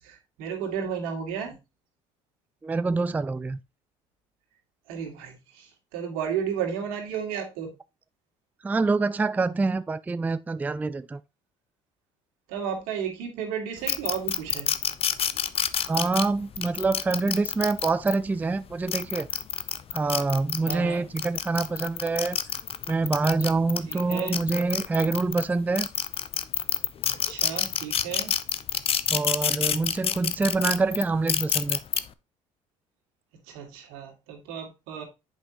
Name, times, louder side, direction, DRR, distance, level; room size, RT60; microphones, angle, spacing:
voice 1, 0.0-1.6 4.9-7.7 12.5-14.7 20.7-21.0 23.9-24.4 27.1-28.3 33.5-35.0, right 7 dB, 85° right, 2.1 m, -33 dB
voice 2, 2.6-3.6 8.6-11.2 15.8-19.3 19.9-22.4 22.9-25.9 29.1-31.8, right 3 dB, 10° right, 0.3 m, -26 dB
sound 1, 13.9-18.1 18.7-20.8 21.2-25.4 25.7-32.0, left 8 dB, 40° left, 0.6 m, -27 dB
7.3 x 5.3 x 2.9 m
supercardioid pair, 80°, 14 cm